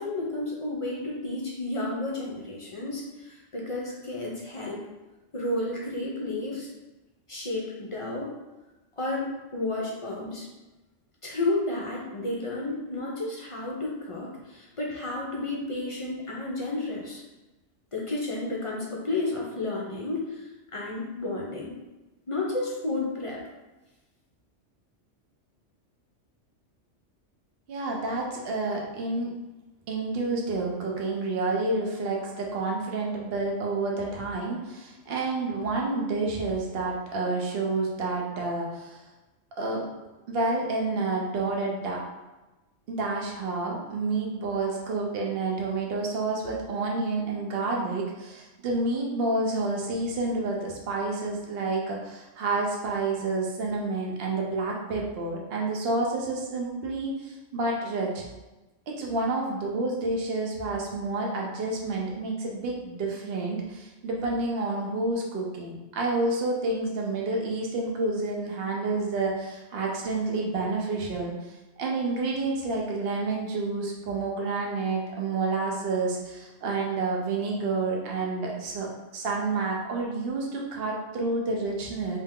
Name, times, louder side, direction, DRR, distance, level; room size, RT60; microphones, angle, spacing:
voice 1, 0.0-4.9 5.3-6.7 7.3-8.3 9.0-10.5 11.2-17.2 17.9-21.7 22.3-23.4, left 2 dB, 35° left, -3 dB, 0.5 m, -32 dB
voice 2, 27.7-29.3 29.9-39.0 39.6-39.8 40.3-42.0 42.9-58.2 58.9-71.5 71.8-82.2, right 3 dB, 55° right, -1 dB, 0.9 m, -29 dB
3.3 x 2.8 x 3.6 m, 1.1 s
omnidirectional pair, 1.3 m